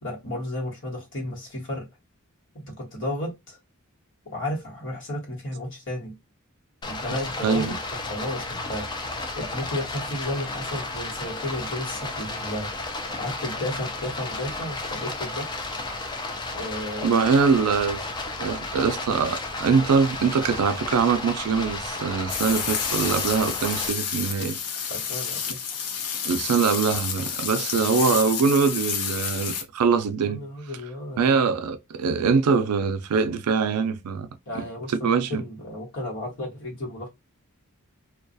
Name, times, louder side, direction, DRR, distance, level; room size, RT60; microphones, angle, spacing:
voice 1, 0.0-1.9 2.5-3.6 4.2-6.2 6.8-7.8 8.1-8.9 9.3-12.7 13.1-15.6 16.5-17.3 24.9-25.6 30.3-31.4 34.5-37.1, left 1 dB, 60° left, 1.2 m, -33 dB
Stream, 6.8-23.9, left 2 dB, 20° left, 0.4 m, -33 dB
voice 2, 7.4-7.7 17.0-18.0 18.4-24.6 26.2-30.4 31.2-34.3 34.5-35.4, right 5 dB, 85° right, 0.4 m, -23 dB
sound 1, 22.3-29.6, left 7 dB, 75° left, 0.6 m, -30 dB
2.3 x 2.2 x 2.6 m
head